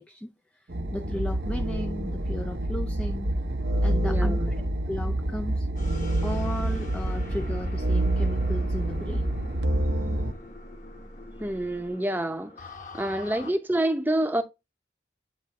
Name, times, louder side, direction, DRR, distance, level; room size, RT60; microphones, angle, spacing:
voice 1, 0.0-3.3 3.8-5.7 6.2-9.3, left 1 dB, 5° left, 0.3 m, -35 dB
sound 1, 0.7-10.3, right 1 dB, 70° right, 0.9 m, -27 dB
voice 2, 4.0-4.5 11.4-12.5 12.9-14.4, right 1 dB, 10° right, 0.7 m, -27 dB
sound 2, 5.8-13.5, left 1 dB, 45° left, 1.1 m, -43 dB
8.4 x 3.1 x 4.2 m
head